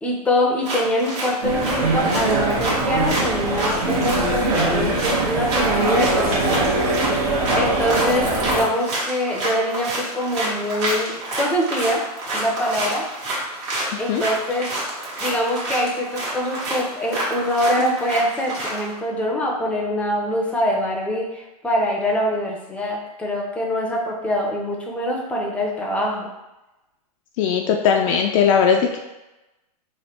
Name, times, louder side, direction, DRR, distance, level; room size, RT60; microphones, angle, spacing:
voice 1, 0.0-6.7 7.5-12.0 12.3-13.0 14.0-14.7 15.2-26.3, equal, 5° left, -2 dB, 0.6 m, -24 dB
sound 1, 0.6-18.9, right 1 dB, 50° right, 1.5 m, -28 dB
sound 2, 1.4-8.6, right 2 dB, 65° right, 1.2 m, -22 dB
voice 2, 27.4-29.0, left 7 dB, 55° left, 2 dB, 0.4 m, -18 dB
3.2 x 2.1 x 4.2 m, 1.0 s
hypercardioid pair, 125°, 20 cm